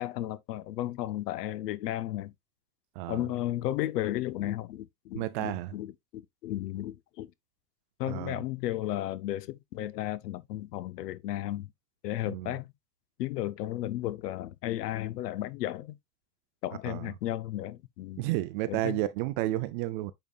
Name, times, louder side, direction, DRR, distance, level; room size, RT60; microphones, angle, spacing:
voice 1, 0.0-2.3 3.1-7.3 8.0-11.7 12.0-12.7 13.2-16.0 16.6-18.2 18.7-19.0, left 14 dB, 85° left, 0.8 m, -34 dB
voice 2, 3.0-3.3 5.1-5.7 8.1-8.4 12.3-12.5 16.9-17.1 18.2-20.1, right 16 dB, 35° right, 0.4 m, -32 dB
9.0 x 5.1 x 2.4 m
supercardioid pair, 150°, 47 cm